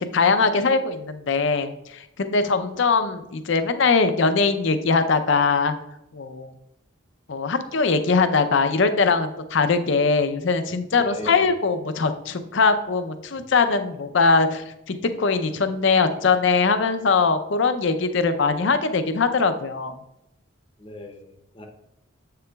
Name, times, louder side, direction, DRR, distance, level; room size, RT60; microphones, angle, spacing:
voice 1, 0.0-5.7 6.1-6.5 7.3-20.0, left 4 dB, 60° left, 9 dB, 0.5 m, -21 dB
voice 2, 11.0-11.5 20.8-21.7, left 1 dB, 25° left, 3 dB, 0.7 m, -37 dB
7.6 x 6.7 x 2.3 m, 0.88 s
head